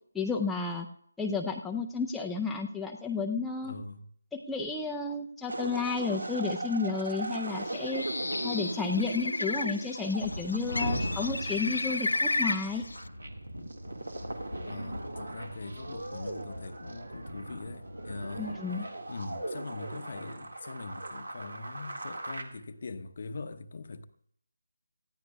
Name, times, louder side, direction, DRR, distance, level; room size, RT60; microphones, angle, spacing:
voice 1, 0.1-0.9 1.2-3.7 4.3-8.0 8.4-12.9 18.4-18.8, left 4 dB, 5° left, 0.5 m, -32 dB
voice 2, 3.6-4.1 14.7-18.5 19.1-24.0, left 3 dB, 45° left, 0.8 m, -42 dB
sound 1, 5.5-22.4, right 2 dB, 70° right, 1.8 m, -40 dB
Bird, 7.5-13.1, left 2 dB, 70° left, 0.5 m, -33 dB
sound 2, 10.2-18.6, equal, 85° right, 1.5 m, -40 dB
19.0 x 14.0 x 2.3 m
figure-of-eight pair, 155°, 0 cm